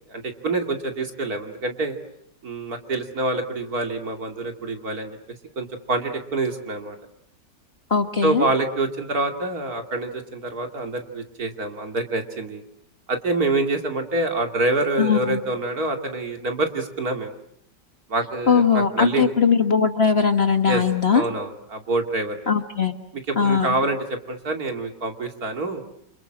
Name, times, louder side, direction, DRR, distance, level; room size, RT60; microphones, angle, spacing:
voice 1, 0.1-2.0 2.4-5.2 5.6-7.0 8.2-12.6 13.1-17.3 18.1-19.3 20.7-20.8 21.1-22.4 23.1-25.8, right 2 dB, 55° right, 5 dB, 3.1 m, -26 dB
voice 2, 7.9-8.5 15.0-15.4 18.5-21.2 22.5-23.0 23.4-23.7, left 6 dB, 40° left, 7 dB, 1.6 m, -20 dB
29.0 x 27.5 x 7.5 m, 0.71 s
omnidirectional pair, 1.9 m